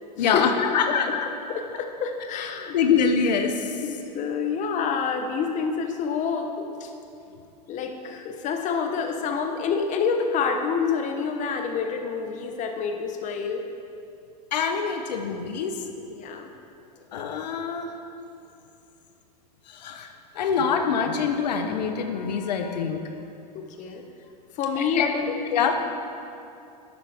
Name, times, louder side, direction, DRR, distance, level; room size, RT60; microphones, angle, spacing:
voice 1, 0.2-1.3 2.4-2.5 2.7-3.8 14.5-15.8 17.1-17.9 19.7-20.1 20.4-23.0 25.0-25.1 25.5-25.8, left 6 dB, 85° left, 5 dB, 0.9 m, -24 dB
voice 2, 1.5-2.8 3.8-6.9 7.7-13.6 16.1-16.5 23.5-24.0 24.6-25.3, left 5 dB, 35° left, 5 dB, 1.0 m, -28 dB
11.5 x 9.1 x 3.5 m, 2.6 s
hypercardioid pair, 110°, 21 cm